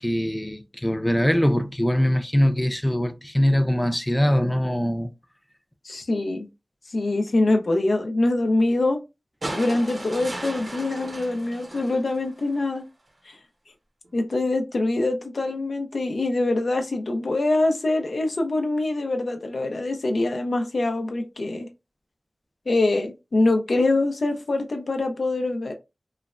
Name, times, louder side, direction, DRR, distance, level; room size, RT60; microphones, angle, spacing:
voice 1, 0.0-5.1, equal, 5° left, 0.3 m, -22 dB
voice 2, 5.8-6.5 6.9-9.0 9.5-12.8 13.3-13.4 14.1-21.7 22.7-25.7, left 2 dB, 75° left, 0.5 m, -24 dB
sound 1, 9.4-12.7 14.0-14.1, right 1 dB, 60° right, 0.6 m, -36 dB
3.1 x 2.0 x 2.4 m
wide cardioid pair, 75°, 0 cm